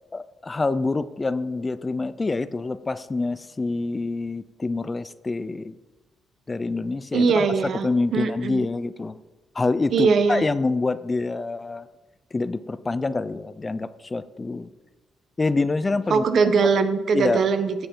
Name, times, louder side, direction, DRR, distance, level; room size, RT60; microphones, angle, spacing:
voice 1, 0.1-5.8 6.5-9.2 9.5-11.9 12.3-14.7 15.4-16.2 17.1-17.4, left 3 dB, 25° left, 15 dB, 0.4 m, -26 dB
voice 2, 7.1-7.9 8.1-8.7 9.9-10.4 16.1-17.9, right 5 dB, 60° right, 9 dB, 1.0 m, -21 dB
15.0 x 7.8 x 3.8 m, 1.2 s
cardioid pair, 90°, 0 cm